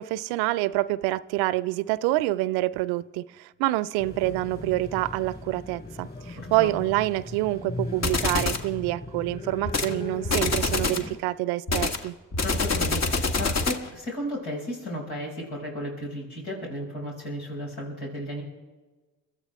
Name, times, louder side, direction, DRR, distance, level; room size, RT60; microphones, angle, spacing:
voice 1, 0.0-12.1, right 18 dB, 80° right, 0.5 m, -27 dB
sound 1, 4.0-11.2, left 2 dB, 25° left, 5.0 m, -38 dB
voice 2, 6.4-6.7 12.4-18.4, equal, 85° left, 6.0 m, -34 dB
sound 2, 8.0-8.7 9.6-9.9 10.2-11.1 11.7-13.9, left 3 dB, 45° left, 1.5 m, -26 dB
30.0 x 13.5 x 3.5 m
hypercardioid pair, 45°, 38 cm